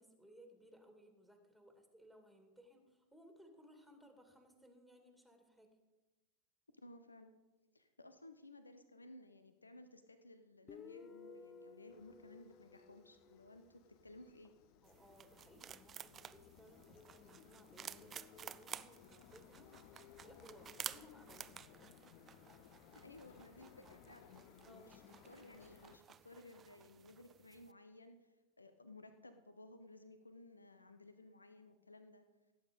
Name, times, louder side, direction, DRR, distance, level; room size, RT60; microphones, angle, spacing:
voice 1, 0.0-5.8 14.8-22.1 24.6-25.0, equal, ahead, 4 dB, 2.3 m, -62 dB
voice 2, 6.7-7.3 7.7-14.5 23.0-24.4 24.7-32.2, left 2 dB, 80° left, 10 dB, 0.8 m, -58 dB
Guitar, 10.7-14.2, left 4 dB, 25° left, 1.0 m, -57 dB
sound 1, 11.9-26.0, left 10 dB, 45° left, 0.7 m, -62 dB
sound 2, 14.8-27.7, right 8 dB, 25° right, 0.4 m, -53 dB
17.0 x 8.8 x 5.3 m, 1.1 s
figure-of-eight pair, 90°, 0 cm